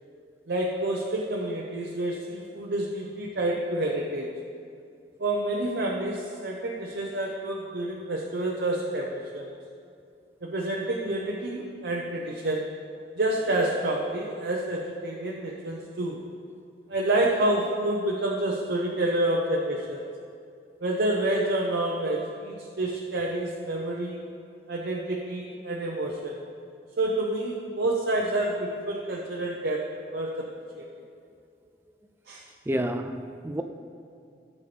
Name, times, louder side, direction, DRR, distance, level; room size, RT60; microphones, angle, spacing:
voice 1, 0.5-4.3 5.2-9.5 10.4-12.7 13.2-16.2 16.9-20.1 20.8-24.2 24.7-26.4 27.0-30.5 30.8-30.9 32.3-32.4, right 1 dB, 80° right, 0.8 m, -28 dB
voice 2, 32.7-33.6, right 1 dB, 15° right, 0.4 m, -29 dB
15.5 x 7.3 x 3.3 m
head